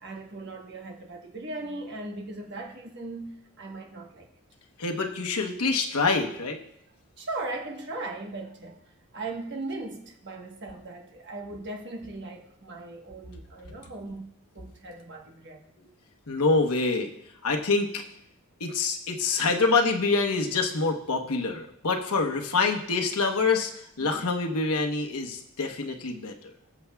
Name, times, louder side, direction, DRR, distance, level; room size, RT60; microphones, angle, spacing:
voice 1, 0.0-4.3 7.2-14.2 14.5-15.6 24.0-24.3 26.7-26.8, right 2 dB, 50° right, 1.3 m, -38 dB
voice 2, 4.8-6.6 16.3-17.1 17.4-18.0 18.6-26.5, left 4 dB, 90° left, 1.1 m, -26 dB
19.5 x 7.1 x 2.3 m
head